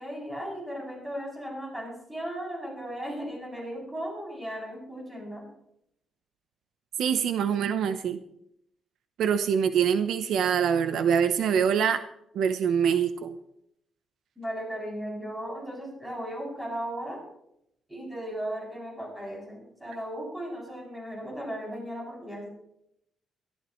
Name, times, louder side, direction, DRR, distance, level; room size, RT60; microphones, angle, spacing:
voice 1, 0.0-5.4 14.4-17.2 17.9-22.5, equal, 5° right, -3 dB, 7.4 m, -36 dB
voice 2, 7.0-8.2 9.2-12.0 12.3-13.4, right 7 dB, 75° right, 9 dB, 0.8 m, -24 dB
22.5 x 13.5 x 3.2 m, 0.76 s
cardioid pair, 150°, 0 cm